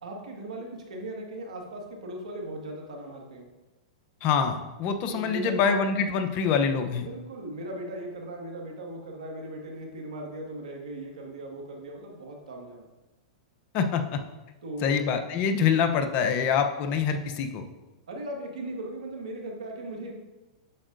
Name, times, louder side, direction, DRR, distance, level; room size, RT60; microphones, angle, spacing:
voice 1, 0.0-3.5 5.1-5.8 7.0-12.9 14.6-14.9 18.1-20.2, right 1 dB, 80° right, 0 dB, 1.8 m, -38 dB
voice 2, 4.2-7.1 13.7-14.2 14.8-17.6, left 6 dB, 40° left, 6 dB, 0.8 m, -25 dB
8.5 x 7.2 x 2.6 m, 1.1 s
hypercardioid pair, 120°, 4 cm